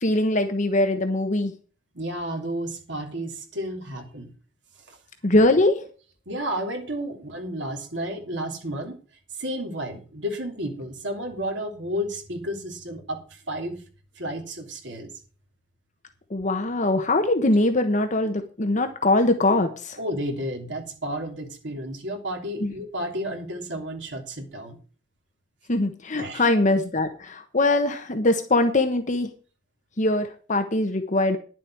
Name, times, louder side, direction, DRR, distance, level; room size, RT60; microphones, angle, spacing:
voice 1, 0.0-1.5 5.2-5.8 16.3-20.0 22.6-22.7 25.7-29.3 30.0-31.4, left 2 dB, 40° left, 6 dB, 1.2 m, -22 dB
voice 2, 1.9-4.3 4.9-5.0 6.3-9.0 9.3-13.8 14.2-15.1 20.0-24.8 26.2-26.5, equal, 75° right, 3 dB, 3.1 m, -32 dB
11.0 x 7.7 x 6.1 m, 0.38 s
head